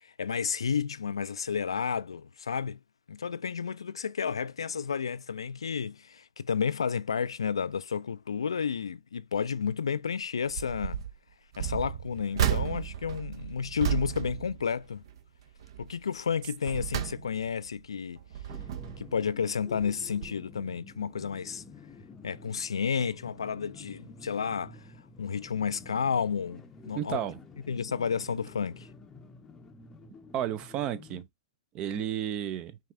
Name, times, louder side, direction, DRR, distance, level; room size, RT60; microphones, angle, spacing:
voice 1, 0.0-2.8 3.1-11.0 11.6-15.0 15.8-18.2 19.0-21.6 22.2-24.8 25.2-27.2 27.7-28.9, left 6 dB, 85° left, 0.4 m, -31 dB
sound 1, 10.5-11.1 11.5-15.2 15.6-15.9 16.4-17.7 18.2-19.1 19.8-20.0 20.2-20.3, right 10 dB, 65° right, 0.9 m, -33 dB
sound 2, 18.5-31.2, left 3 dB, 15° left, 0.7 m, -50 dB
voice 2, 26.9-27.4 30.3-31.3 31.7-32.8, right 10 dB, 35° right, 0.6 m, -32 dB
5.6 x 2.5 x 3.5 m
hypercardioid pair, 120°, 3 cm